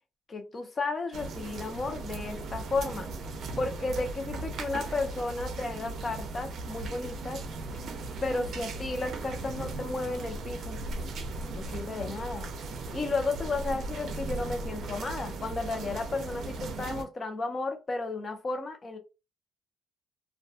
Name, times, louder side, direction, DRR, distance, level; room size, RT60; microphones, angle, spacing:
voice 1, 0.3-3.1 3.6-7.4 8.2-10.8 11.5-12.5 12.9-19.0, left 3 dB, 30° left, 0.6 m, -33 dB
sound 1, 1.1-17.0, right 2 dB, 60° right, 0.5 m, -37 dB
2.3 x 2.2 x 2.6 m
cardioid pair, 105°, 0 cm